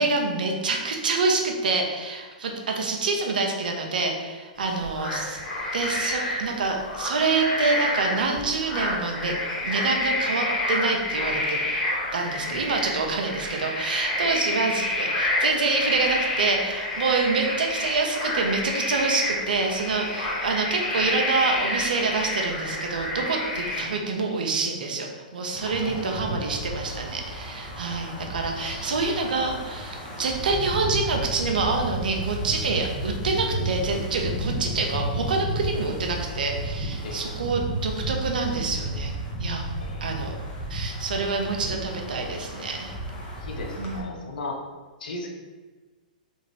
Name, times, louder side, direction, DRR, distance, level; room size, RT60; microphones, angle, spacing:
voice 1, 0.0-5.4 5.7-9.4 9.6-11.6 12.1-39.1 39.4-39.7 40.0-40.3 40.7-42.9 43.8-44.2, right 3 dB, 75° right, 2 dB, 0.6 m, -27 dB
sound 1, 4.6-23.8, left 1 dB, 10° left, 1.2 m, -28 dB
Wind, 25.5-44.0, right 1 dB, 25° left, 0.8 m, -32 dB
voice 2, 25.8-26.1 28.6-28.9 37.0-37.2 39.8-40.2 43.3-44.6 45.0-45.3, left 3 dB, 75° left, 1 dB, 0.6 m, -37 dB
3.4 x 2.4 x 3.2 m, 1.3 s
hypercardioid pair, 125°, 5 cm